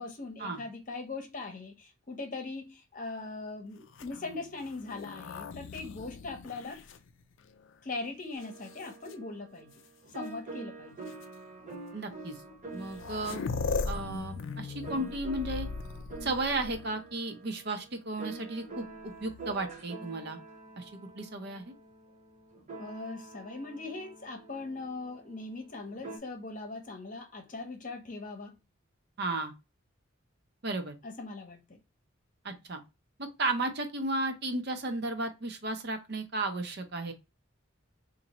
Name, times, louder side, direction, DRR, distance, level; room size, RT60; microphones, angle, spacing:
voice 1, 0.0-6.8 7.8-9.7 10.1-11.0 22.8-28.6 31.0-31.8, left 3 dB, 40° left, 0.8 m, -40 dB
sound 1, 3.9-7.7 8.4-9.1 10.2-10.3 11.1-11.2 12.4-12.5 12.7-17.1 19.1-19.8, left 4 dB, 65° left, 0.4 m, -39 dB
sound 2, 8.4-26.2, right 3 dB, 35° right, 1.0 m, -47 dB
voice 2, 11.9-12.4 12.7-13.5 13.9-15.7 16.2-20.4 20.8-20.9 21.1-21.7 29.2-29.5 30.6-31.0 32.4-32.8 33.2-37.1, right 2 dB, 55° right, 0.7 m, -34 dB
4.2 x 2.6 x 2.9 m
head